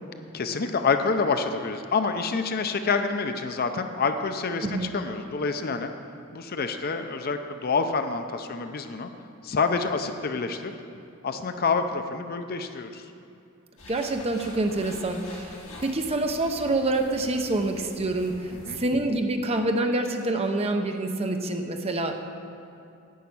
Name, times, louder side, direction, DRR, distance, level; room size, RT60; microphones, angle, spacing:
voice 1, 0.3-5.9 6.3-9.1 9.4-10.7 11.2-13.0 18.6-18.8, left 4 dB, 45° left, 7 dB, 0.6 m, -27 dB
sound 1, 13.8-18.7, left 1 dB, 65° left, 2.1 m, -46 dB
voice 2, 13.9-18.5 18.8-22.1, right 2 dB, 30° right, 5 dB, 0.7 m, -26 dB
10.0 x 5.7 x 8.6 m, 2.6 s
head